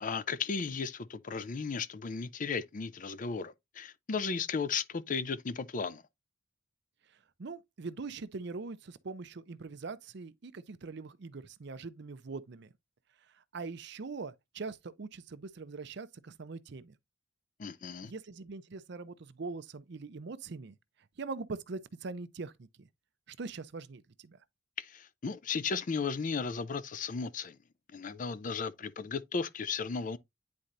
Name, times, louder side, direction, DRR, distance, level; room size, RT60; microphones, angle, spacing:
voice 1, 0.0-6.0 17.6-18.1 24.8-27.6 27.9-30.2, left 5 dB, 45° left, 0.5 m, -35 dB
voice 2, 7.4-12.7 13.5-16.9 18.0-20.8 21.2-22.9 23.3-24.4, right 4 dB, 60° right, 0.6 m, -42 dB
9.6 x 4.3 x 2.5 m
head